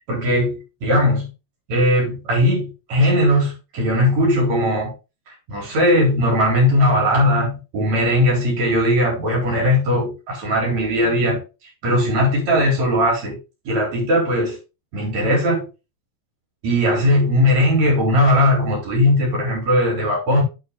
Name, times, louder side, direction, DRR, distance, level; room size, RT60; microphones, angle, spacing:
voice 1, 0.1-1.3 1.7-4.9 5.5-11.4 11.8-13.4 13.6-14.6 14.9-15.7 16.6-20.4, left 1 dB, 40° right, 4.9 m, -18 dB
8.1 x 7.1 x 3.9 m
omnidirectional pair, 5.2 m